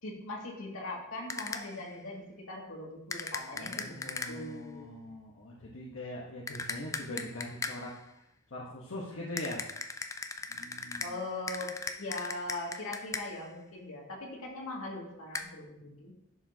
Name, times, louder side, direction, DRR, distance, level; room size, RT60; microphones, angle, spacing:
voice 1, 0.0-5.0 11.0-16.1, left 2 dB, 80° left, -2 dB, 2.1 m, -41 dB
sound 1, 1.3-1.8 3.1-4.6 6.5-8.0 9.4-13.5 15.3-15.4, left 4 dB, 15° left, 0.3 m, -39 dB
voice 2, 3.5-7.9 8.5-9.6 10.5-11.1, left 1 dB, 60° left, -4 dB, 1.1 m, -42 dB
11.0 x 6.2 x 2.8 m, 0.84 s
head